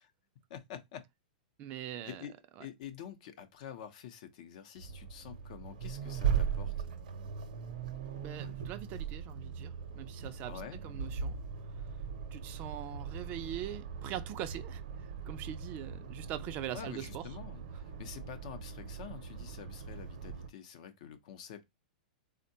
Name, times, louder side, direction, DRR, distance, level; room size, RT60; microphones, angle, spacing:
voice 1, 0.5-1.0 2.0-2.3 2.6-6.7 10.5-10.8 16.7-21.6, left 9 dB, 60° left, 0.6 m, -47 dB
voice 2, 1.6-2.2 2.6-2.7 8.2-10.5 10.8-11.4 12.3-14.8 15.3-17.2, right 11 dB, 35° right, 0.3 m, -42 dB
Accelerating revving vroom, 4.8-20.5, right 7 dB, 65° right, 0.7 m, -39 dB
3.5 x 2.1 x 2.6 m
hypercardioid pair, 130°, 5 cm